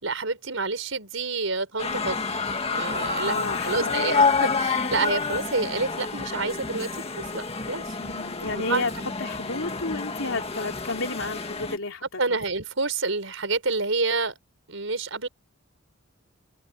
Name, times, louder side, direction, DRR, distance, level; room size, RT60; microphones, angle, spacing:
voice 1, 0.0-2.2 2.7-3.3 3.6-7.8 8.5-9.1 12.2-14.4 14.7-15.3, right 3 dB, 75° right, 5.0 m, -28 dB
sound 1, 1.8-11.8, left 4 dB, 30° left, 1.9 m, -28 dB
voice 2, 3.2-4.2 8.0-8.9 9.2-12.4, left 3 dB, 85° left, 3.3 m, -31 dB
head